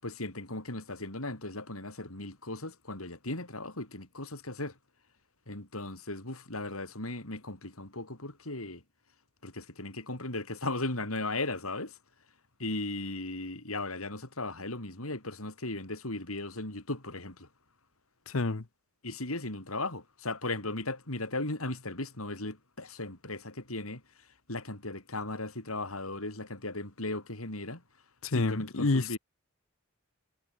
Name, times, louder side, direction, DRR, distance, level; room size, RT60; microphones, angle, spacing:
voice 1, 0.0-4.7 5.5-8.8 9.4-11.9 12.6-17.5 19.0-24.0 24.5-27.8 28.3-29.2, left 2 dB, 90° left, 7.0 m, -37 dB
voice 2, 18.3-18.6 28.2-29.2, left 3 dB, 75° left, 1.0 m, -28 dB
head